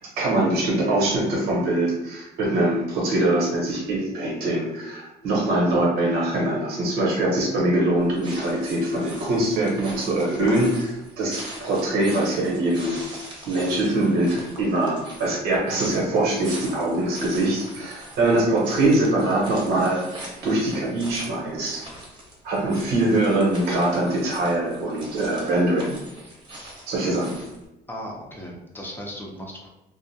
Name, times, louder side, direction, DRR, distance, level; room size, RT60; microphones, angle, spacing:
voice 1, 0.0-13.0 13.4-20.1 20.4-21.8 22.4-25.9 26.9-27.4, right 1 dB, 85° right, -3 dB, 0.9 m, -23 dB
sound 1, 8.0-27.7, right 1 dB, 30° right, 0.8 m, -41 dB
voice 2, 27.9-29.7, equal, 15° left, -2 dB, 0.6 m, -36 dB
2.4 x 2.0 x 2.7 m, 0.93 s
cardioid pair, 110°, 16 cm